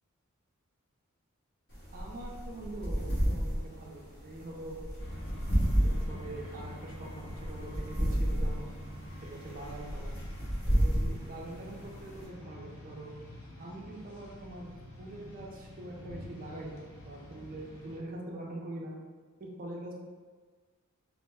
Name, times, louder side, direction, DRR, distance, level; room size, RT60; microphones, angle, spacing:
sound 1, 1.7-12.2, equal, 55° left, 1.3 m, -32 dB
voice 1, 1.9-4.8 5.7-8.7 9.2-10.1 10.7-13.1 13.6-14.7 15.0-18.9 19.4-19.9, right 1 dB, 40° right, -2 dB, 0.5 m, -44 dB
sound 2, 5.0-18.0, equal, 70° left, 0.6 m, -46 dB
3.0 x 2.0 x 3.4 m, 1.5 s
head